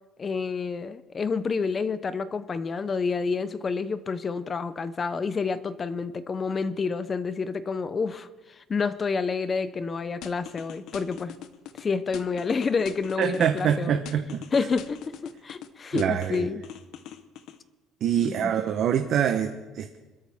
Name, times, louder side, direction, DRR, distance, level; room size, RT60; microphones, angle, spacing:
voice 1, 0.2-11.4 11.8-14.0 14.5-15.0 15.4-16.6 18.2-18.5, left 5 dB, 20° left, 14 dB, 0.5 m, -29 dB
sound 1, 10.2-11.8 12.1-13.8 14.1-15.7 16.0-17.6, left 10 dB, 55° left, 0.9 m, -41 dB
voice 2, 13.2-14.4 15.9-16.5 18.0-20.0, right 9 dB, 45° right, 6 dB, 0.8 m, -25 dB
25.5 x 13.5 x 3.5 m, 1.2 s
cardioid pair, 175°, 0 cm